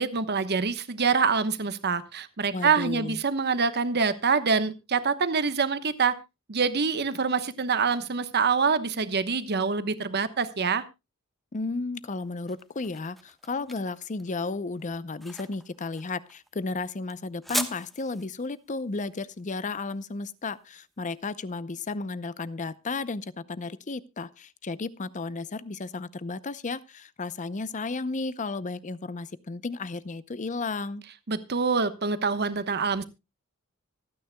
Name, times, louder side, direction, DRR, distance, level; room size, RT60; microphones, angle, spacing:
voice 1, 0.0-6.1 6.5-10.8 31.3-33.0, right 5 dB, 50° right, 12 dB, 1.1 m, -25 dB
voice 2, 2.5-3.2 11.5-31.0, left 3 dB, 35° left, 17 dB, 0.6 m, -33 dB
sound 1, 12.0-21.0, equal, ahead, 1.1 m, -39 dB
25.5 x 9.4 x 2.2 m, 0.25 s
head